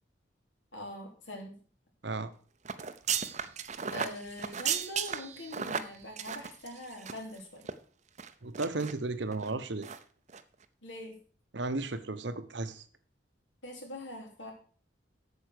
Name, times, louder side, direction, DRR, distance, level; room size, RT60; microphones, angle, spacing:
voice 1, 0.7-1.6 3.9-7.6 10.8-11.2 13.6-14.5, left 1 dB, 75° left, 2 dB, 3.1 m, -43 dB
sound 1, 2.7-7.4 7.6-7.7 8.2-8.9 9.3-9.5 9.8-10.0 10.3-10.4, right 7 dB, 35° right, 0.7 m, -35 dB
voice 2, 8.4-9.9 11.5-12.8, right 3 dB, 65° right, 11 dB, 0.9 m, -34 dB
8.2 x 7.2 x 6.5 m, 0.43 s
head